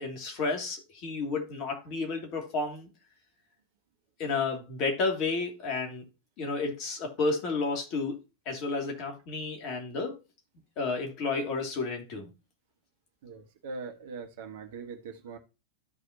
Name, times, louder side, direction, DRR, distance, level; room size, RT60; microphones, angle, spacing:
voice 1, 0.0-2.9 4.2-6.0 6.4-8.2 8.5-10.2 10.8-12.3, left 3 dB, 40° left, 2.7 m, -31 dB
voice 2, 13.2-15.4, right 4 dB, 55° right, 1.5 m, -41 dB
13.5 x 5.0 x 2.8 m
figure-of-eight pair, 90°, 0 cm